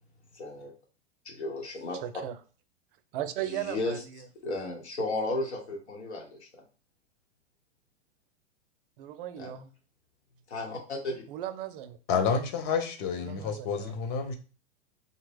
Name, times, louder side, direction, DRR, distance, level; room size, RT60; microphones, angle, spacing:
voice 1, 0.3-0.7 1.2-2.0 3.5-4.0 4.4-6.5 9.4-9.5 10.5-11.2, left 2 dB, 90° left, 1 dB, 1.1 m, -34 dB
voice 2, 2.0-2.4 3.1-4.2 9.0-9.7 11.3-12.0 13.2-13.9, right 12 dB, 55° right, 10 dB, 0.5 m, -37 dB
voice 3, 12.1-14.4, left 6 dB, 45° left, 5 dB, 0.6 m, -29 dB
2.8 x 2.2 x 3.3 m, 0.37 s
hypercardioid pair, 115°, 33 cm